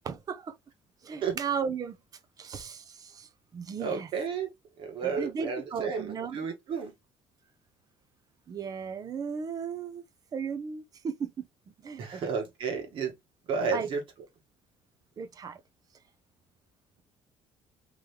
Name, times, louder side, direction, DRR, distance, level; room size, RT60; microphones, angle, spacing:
voice 1, 0.0-0.5 1.0-2.0 2.4-4.1 5.0-6.4 8.5-10.0 10.3-11.5 11.8-12.3 13.7-13.9 15.2-15.6, right 6 dB, 40° right, 0.8 m, -35 dB
voice 2, 3.8-4.5 4.8-6.9 12.0-13.1 13.5-14.0, right 5 dB, 60° right, 2.1 m, -32 dB
3.9 x 3.0 x 3.3 m
cardioid pair, 115°, 10 cm